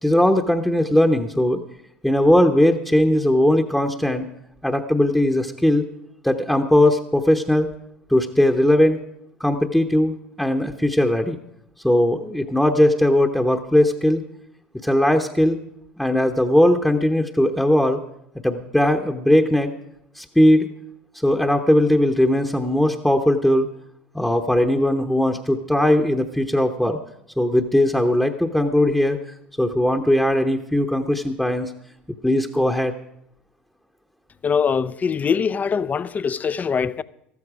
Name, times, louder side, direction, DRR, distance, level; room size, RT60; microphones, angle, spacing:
voice 1, 0.0-1.6 2.0-4.3 4.6-5.8 6.2-7.7 8.1-9.0 9.4-11.4 11.8-14.2 14.8-15.6 16.0-18.0 18.4-19.7 20.2-20.7 21.2-23.7 24.1-27.0 27.4-29.2 29.6-31.7 32.2-32.9, left 1 dB, 5° left, 0.9 m, -19 dB
voice 2, 34.4-37.0, left 6 dB, 30° left, 0.5 m, -22 dB
14.0 x 13.0 x 4.9 m
hypercardioid pair, 75°, 5 cm